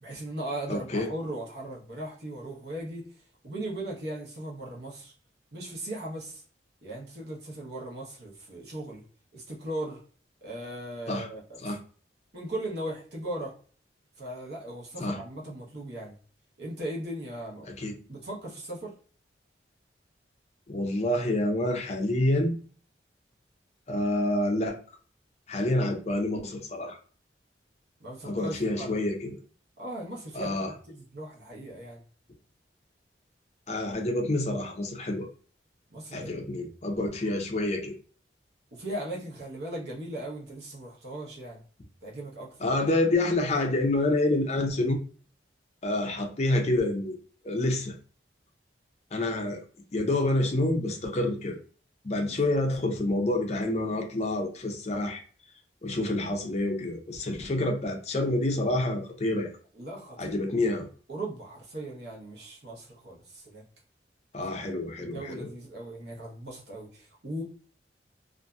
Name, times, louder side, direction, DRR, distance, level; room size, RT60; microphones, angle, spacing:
voice 1, 0.0-3.0 3.4-5.1 5.5-6.4 6.8-9.0 9.3-10.0 10.4-11.8 12.3-13.5 14.2-16.1 16.6-17.7 18.1-18.9 28.0-29.0 29.8-32.0 35.9-36.5 38.7-41.6 42.0-42.7 52.2-52.6 59.7-60.8 61.1-63.6 64.6-67.4, right 1 dB, 65° right, -2 dB, 0.9 m, -38 dB
voice 2, 0.7-1.1 11.1-11.3 11.6-11.8 15.0-15.2 17.7-18.0 20.7-22.6 23.9-24.8 25.5-27.0 28.2-29.4 30.3-30.7 33.7-35.3 36.1-37.9 42.6-45.0 45.8-47.2 47.4-47.9 49.1-49.6 49.9-51.6 52.0-55.2 55.8-59.5 60.2-60.9 64.3-65.5, left 1 dB, 35° left, 3 dB, 0.5 m, -28 dB
2.6 x 2.5 x 2.2 m, 0.41 s
head